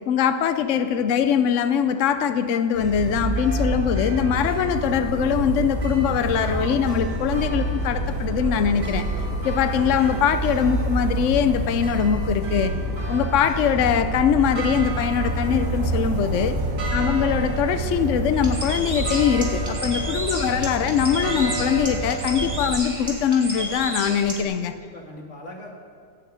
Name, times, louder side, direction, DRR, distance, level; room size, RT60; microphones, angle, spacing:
voice 1, 0.1-9.1 9.4-12.7 13.1-16.5 16.9-24.7, left 8 dB, 80° left, 10 dB, 0.6 m, -22 dB
sound 1, 2.7-22.7, right 2 dB, 55° right, 2.6 m, -27 dB
voice 2, 16.2-17.0 19.8-20.1 24.7-25.7, left 1 dB, 40° left, 0 dB, 2.4 m, -42 dB
Bird, 18.3-24.4, equal, 10° right, 2.9 m, -32 dB
17.0 x 6.5 x 9.4 m, 2.1 s
omnidirectional pair, 2.0 m